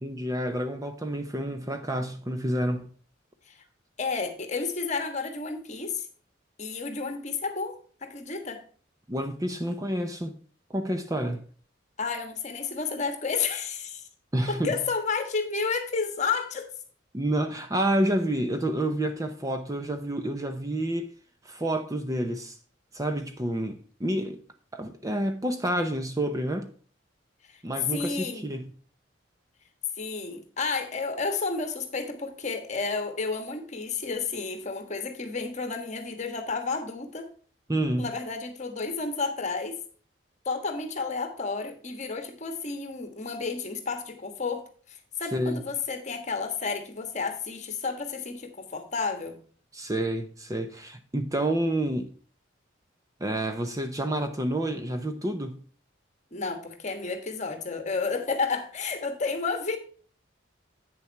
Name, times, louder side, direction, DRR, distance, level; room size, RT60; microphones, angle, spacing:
voice 1, 0.0-2.9 9.1-10.3 10.7-11.4 14.3-14.7 17.1-21.1 21.4-22.6 22.9-24.4 24.7-26.7 27.6-28.6 37.7-38.1 45.3-45.6 49.7-52.1 53.2-55.6, right 1 dB, 15° right, 0.6 m, -29 dB
voice 2, 4.0-6.1 6.6-8.6 12.0-14.1 14.5-16.7 27.5-27.6 27.9-28.5 30.0-37.3 38.0-39.8 40.4-49.4 56.3-59.8, left 4 dB, 35° left, 1.3 m, -31 dB
8.7 x 6.9 x 4.4 m
head